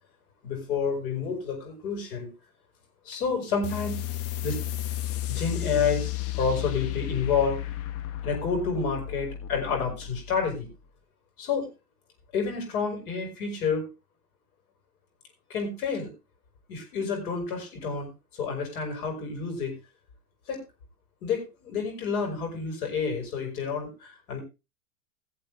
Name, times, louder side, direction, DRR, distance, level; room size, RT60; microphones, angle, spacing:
voice 1, 0.4-2.3 3.0-4.0 4.4-4.6 5.3-7.6 8.2-10.7 11.4-11.7 12.3-13.9 15.5-16.1 16.7-18.1 18.4-19.8 20.5-20.6 21.2-24.4, left 5 dB, 60° left, 2 dB, 5.9 m, -29 dB
sound 1, 3.6-10.8, left 13 dB, 30° left, 0.8 m, -33 dB
19.0 x 7.1 x 3.5 m, 0.27 s
hypercardioid pair, 105°, 48 cm